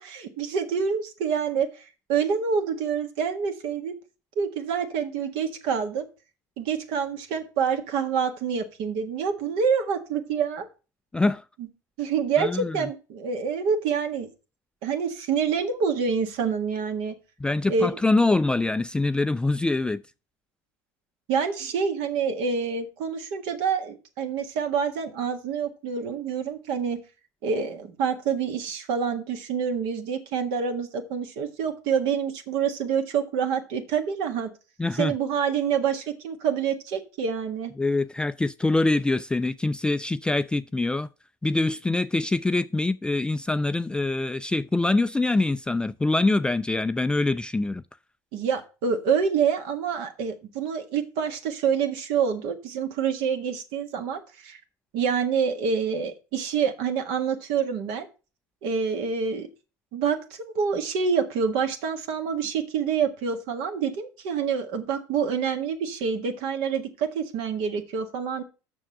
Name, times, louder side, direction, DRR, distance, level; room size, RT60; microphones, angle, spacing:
voice 1, 0.0-1.8 2.1-3.9 4.3-6.1 6.6-10.7 11.6-11.7 12.0-14.3 14.8-17.1 17.7-18.0 21.3-27.0 27.4-34.5 34.9-37.7 48.3-54.6 54.9-58.1 58.6-59.5 59.9-68.4, right 6 dB, 70° right, 1.7 m, -27 dB
voice 2, 11.1-11.4 12.4-12.9 17.4-20.0 34.8-35.1 37.8-41.1 41.4-47.8, left 2 dB, 10° left, 0.3 m, -24 dB
6.4 x 6.3 x 6.4 m
supercardioid pair, 85°, 9 cm